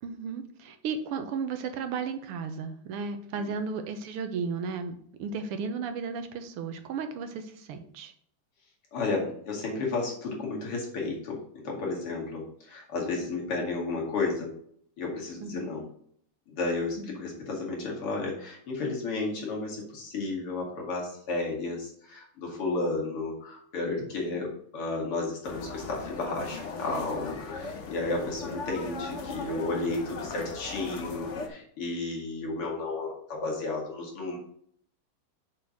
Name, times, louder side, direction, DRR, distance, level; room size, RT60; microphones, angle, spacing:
voice 1, 0.0-8.1 15.4-15.7 17.0-17.2 24.3-24.4, right 5 dB, 85° right, 8 dB, 1.8 m, -34 dB
voice 2, 8.9-14.5 15.0-15.9 16.5-34.4, left 3 dB, 85° left, -2 dB, 3.1 m, -32 dB
sound 1, 25.4-31.5, left 4 dB, 55° left, 0.8 m, -38 dB
6.7 x 4.4 x 6.2 m, 0.62 s
omnidirectional pair, 2.4 m